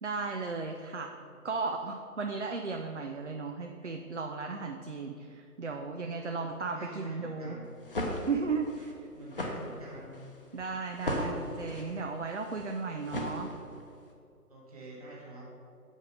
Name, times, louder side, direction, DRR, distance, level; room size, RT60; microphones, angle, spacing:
voice 1, 0.0-1.1 1.4-7.6 8.3-9.1 10.5-13.5, right 4 dB, 50° right, 4 dB, 0.5 m, -35 dB
voice 2, 6.1-7.7 9.1-10.2 14.5-15.4, right 1 dB, 25° right, -5 dB, 1.6 m, -47 dB
Falling on the Bed, 7.6-13.9, left 1 dB, 35° left, 0.9 m, -37 dB
7.1 x 5.4 x 6.3 m, 2.5 s
figure-of-eight pair, 155°, 46 cm